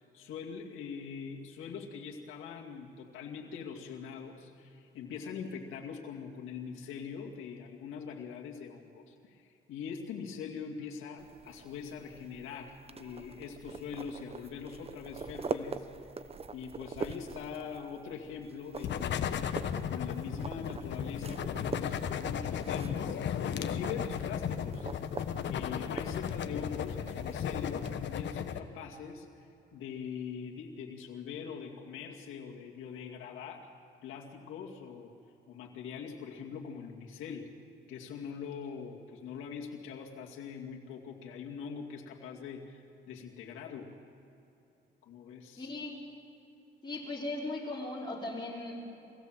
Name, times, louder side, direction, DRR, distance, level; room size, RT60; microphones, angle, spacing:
voice 1, 0.0-15.9 16.5-19.5 19.9-24.9 25.5-33.7 34.0-35.1 35.5-37.5 37.9-43.9 45.0-45.7, left 6 dB, 90° left, -1 dB, 2.3 m, -43 dB
sound 1, 11.2-27.9, right 4 dB, 30° right, 0.9 m, -44 dB
sound 2, 18.8-28.6, left 8 dB, 65° left, 1.2 m, -35 dB
voice 2, 45.6-46.0 46.8-49.0, left 2 dB, 20° left, -5 dB, 5.1 m, -38 dB
24.0 x 17.0 x 7.6 m, 2.8 s
cardioid pair, 90°, 20 cm